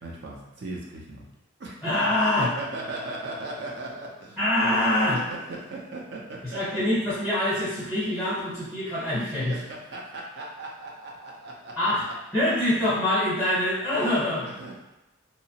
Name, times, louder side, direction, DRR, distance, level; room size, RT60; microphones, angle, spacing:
voice 1, 0.0-1.3 1.6-1.9 2.4-4.4 5.1-6.8 9.5-11.8 14.4-14.8, right 2 dB, 55° right, -2 dB, 0.6 m, -38 dB
voice 2, 1.8-2.5 4.4-5.2 6.4-9.5 11.8-12.0 12.3-14.5, left 1 dB, ahead, -11 dB, 0.9 m, -24 dB
2.8 x 2.1 x 2.8 m, 0.93 s
head